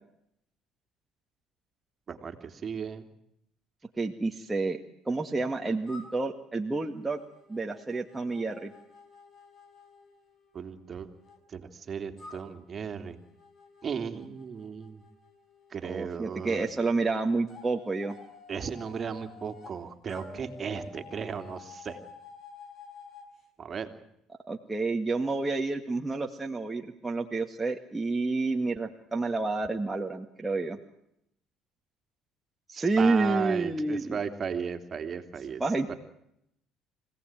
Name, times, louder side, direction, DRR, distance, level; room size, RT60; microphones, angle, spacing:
voice 1, 2.1-3.0 10.5-11.1 11.5-13.2 13.8-15.0 15.7-16.7 18.5-22.0 23.6-23.9 32.8-35.6 35.9-36.0, right 6 dB, 40° right, 7 dB, 3.1 m, -35 dB
voice 2, 3.9-4.8 5.1-7.2 7.5-8.7 15.8-18.2 24.5-30.8 32.7-34.2 35.6-35.9, right 3 dB, 15° right, 2 dB, 2.0 m, -29 dB
sound 1, 5.9-11.4 12.2-16.6 17.5-19.8 20.1-23.3, left 4 dB, 40° left, 5.8 m, -51 dB
26.0 x 17.5 x 9.1 m, 0.77 s
supercardioid pair, 95°, 0 cm